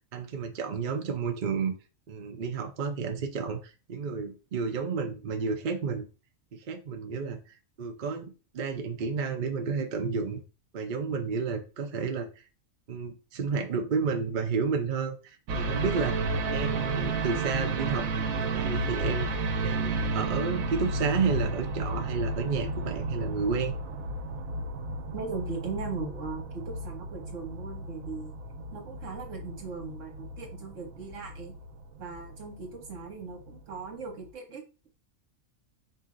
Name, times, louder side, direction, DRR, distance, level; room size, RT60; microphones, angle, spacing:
voice 1, 0.1-1.7 2.1-6.0 6.7-7.4 7.8-10.4 10.7-12.3 12.9-16.3 16.5-18.1 18.4-23.7, right 5 dB, 50° right, 5 dB, 0.6 m, -31 dB
sound 1, 15.5-33.9 34.2-34.3, right 2 dB, 90° right, 1.1 m, -33 dB
voice 2, 25.1-28.3 28.7-31.5 32.0-34.9, right 4 dB, 65° right, 2 dB, 1.6 m, -39 dB
4.6 x 2.7 x 3.8 m, 0.31 s
omnidirectional pair, 1.4 m